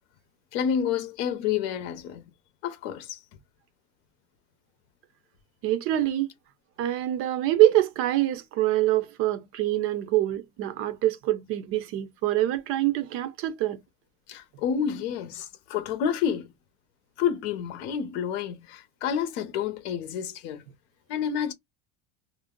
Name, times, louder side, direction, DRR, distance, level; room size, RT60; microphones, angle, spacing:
voice 1, 0.5-2.3 2.6-3.2 14.3-16.5 17.2-20.6 21.1-21.5, left 8 dB, 80° left, 0.7 m, -29 dB
voice 2, 5.6-6.3 6.8-13.8, right 14 dB, 45° right, 0.4 m, -25 dB
2.5 x 2.0 x 3.6 m
cardioid pair, 165°, 32 cm